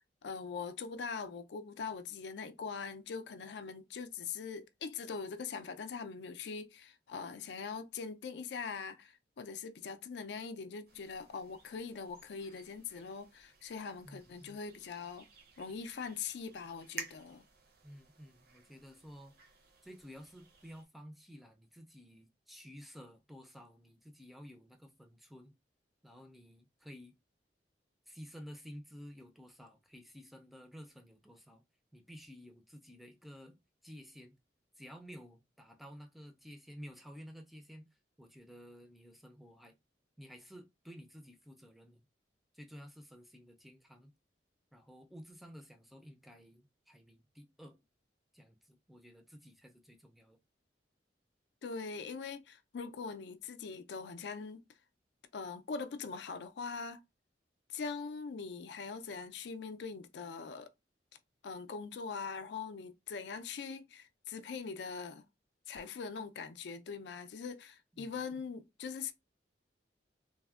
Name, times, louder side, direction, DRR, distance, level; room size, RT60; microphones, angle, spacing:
voice 1, 0.0-15.2 15.6-17.4 51.6-54.6 55.3-57.0 57.7-60.7 61.4-65.2 65.7-69.1, left 5 dB, 70° left, 0.4 m, -42 dB
sound 1, 10.9-20.8, right 4 dB, 55° right, 0.5 m, -54 dB
voice 2, 14.0-14.6 17.8-19.3 19.8-25.5 26.0-27.1 28.1-31.6 31.9-33.6 33.8-34.4 34.8-37.9 38.2-39.8 40.2-42.0 42.5-44.1 44.7-47.8 48.3-50.4 67.9-68.2, equal, ahead, 0.4 m, -53 dB
3.3 x 2.1 x 2.3 m
head